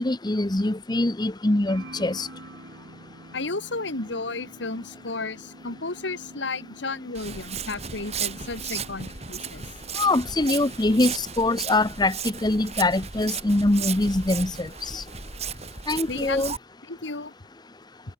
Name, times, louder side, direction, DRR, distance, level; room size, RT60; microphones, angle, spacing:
voice 1, 0.0-2.3 10.0-15.0 15.9-16.5, left 2 dB, 20° left, 0.9 m, -23 dB
sound 1, 1.7-11.2, right 1 dB, 75° right, 4.8 m, -47 dB
voice 2, 3.3-9.6 16.1-16.5 16.9-17.3, left 3 dB, 70° left, 1.9 m, -33 dB
Walk footsteps, 7.1-16.6, right 7 dB, 35° right, 5.8 m, -35 dB
head